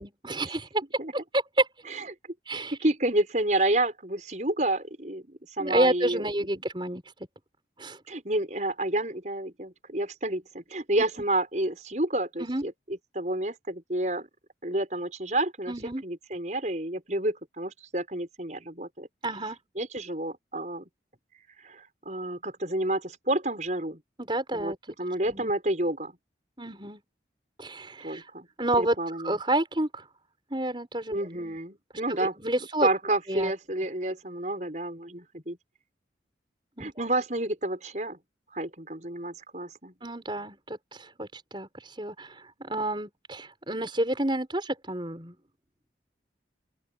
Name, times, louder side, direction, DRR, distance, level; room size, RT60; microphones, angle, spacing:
voice 1, 0.0-0.8 1.1-1.7 2.5-2.8 5.6-7.0 7.8-8.0 12.4-12.6 15.7-16.0 19.2-19.6 24.2-24.8 25.2-25.5 26.6-27.0 27.6-28.3 28.6-29.0 29.2-30.0 30.5-31.6 32.1-32.9 33.3-33.5 36.8-36.9 40.0-45.3, right 1 dB, 25° right, 6.0 m, -29 dB
voice 2, 2.5-6.3 8.1-14.3 14.6-15.7 16.0-19.1 19.8-20.9 21.6-24.0 24.5-24.7 25.0-26.1 28.0-28.5 28.8-29.4 31.1-32.4 32.8-35.6 36.8-38.2 38.5-39.9, right 1 dB, 40° right, 6.1 m, -30 dB
open air
head